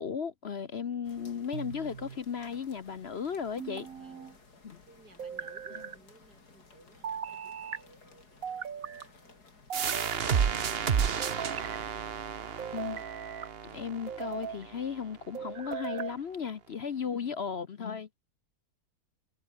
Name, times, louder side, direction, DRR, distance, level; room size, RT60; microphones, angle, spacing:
voice 1, 0.0-3.9 4.6-4.8 12.7-13.0 13.6-18.1, left 7 dB, 50° left, 1.0 m, -35 dB
sound 1, 1.0-9.7, left 3 dB, 75° left, 4.1 m, -58 dB
sound 2, 1.5-2.2 3.6-4.3 5.2-6.0 7.0-7.8 8.4-9.1 9.7-10.5 11.2-11.8 12.6-13.5 14.1-14.6 15.3-16.2, right 7 dB, 60° right, 1.8 m, -39 dB
voice 2, 3.9-4.4 4.9-11.6 17.0-17.5, right 2 dB, 90° right, 7.5 m, -60 dB
sound 3, 9.7-15.1, right 7 dB, 45° right, 1.1 m, -32 dB
omnidirectional pair, 1.7 m